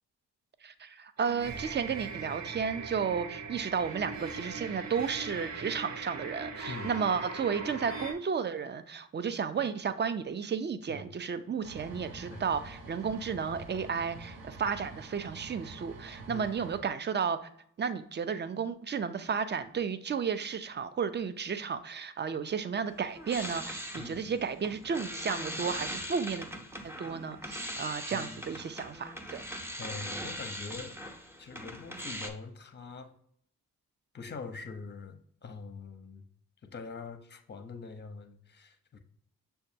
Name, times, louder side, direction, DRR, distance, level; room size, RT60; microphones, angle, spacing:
voice 1, 0.6-17.5 17.8-26.5 26.8-29.4, right 6 dB, 30° right, 12 dB, 0.4 m, -33 dB
sound 1, 1.2-8.1, right 4 dB, 50° right, 0.9 m, -40 dB
sound 2, 11.6-16.8, right 2 dB, 75° right, 0.7 m, -47 dB
sound 3, 22.9-32.3, equal, 5° right, 0.7 m, -40 dB
voice 2, 28.1-28.4 29.5-30.9 31.4-33.1 34.1-36.3 36.6-39.0, left 4 dB, 30° left, 8 dB, 0.6 m, -44 dB
6.3 x 2.3 x 2.7 m, 0.66 s
supercardioid pair, 40°, 35 cm